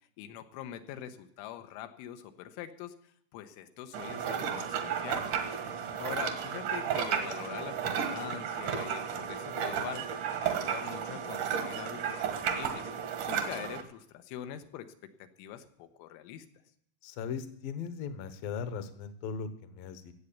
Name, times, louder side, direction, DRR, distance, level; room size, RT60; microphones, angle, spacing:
voice 1, 0.2-5.3 6.0-10.1 10.4-12.9 13.2-16.5, left 10 dB, 90° left, 8 dB, 3.4 m, -44 dB
sound 1, 3.9-13.8, right 8 dB, 70° right, 1.9 m, -33 dB
voice 2, 17.0-20.1, left 6 dB, 70° left, 11 dB, 2.2 m, -38 dB
16.0 x 8.1 x 8.5 m, 0.69 s
omnidirectional pair, 5.6 m